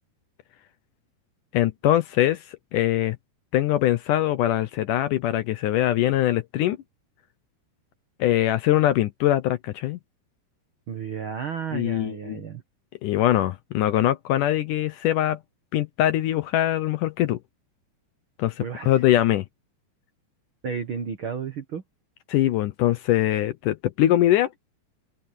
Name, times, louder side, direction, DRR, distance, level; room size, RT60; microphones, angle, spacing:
voice 1, 1.5-3.2 3.5-6.8 8.2-10.0 11.7-12.4 13.0-15.4 15.7-17.4 18.4-19.5 22.3-24.5, left 13 dB, 75° left, 1.9 m, -22 dB
voice 2, 10.9-12.6 18.6-18.9 20.6-21.8, right 7 dB, 85° right, 1.1 m, -32 dB
open air
omnidirectional pair, 4.6 m